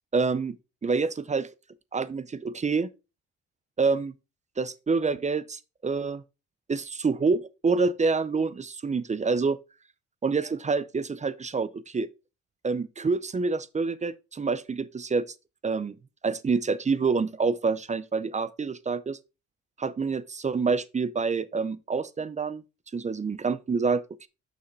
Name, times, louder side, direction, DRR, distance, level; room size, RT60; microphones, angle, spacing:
voice 1, 0.1-0.6 0.8-1.5 1.9-2.9 3.8-4.1 4.6-6.2 6.7-9.6 10.2-12.1 12.6-15.3 15.6-16.0 16.2-19.2 19.8-22.6 22.9-24.3, right 4 dB, 25° right, 0.5 m, -27 dB
6.3 x 5.6 x 4.0 m
cardioid pair, 90°, 30 cm